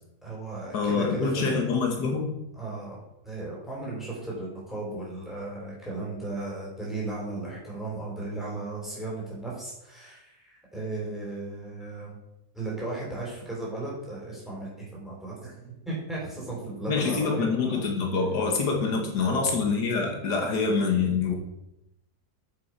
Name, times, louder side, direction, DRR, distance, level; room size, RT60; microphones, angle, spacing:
voice 1, 0.2-1.6 2.5-12.2 12.5-17.8 19.2-19.6, right 2 dB, ahead, -6 dB, 3.7 m, -36 dB
voice 2, 0.7-2.3 16.9-21.3, left 4 dB, 85° left, 2 dB, 2.0 m, -26 dB
9.1 x 6.6 x 4.7 m, 0.88 s
omnidirectional pair, 1.7 m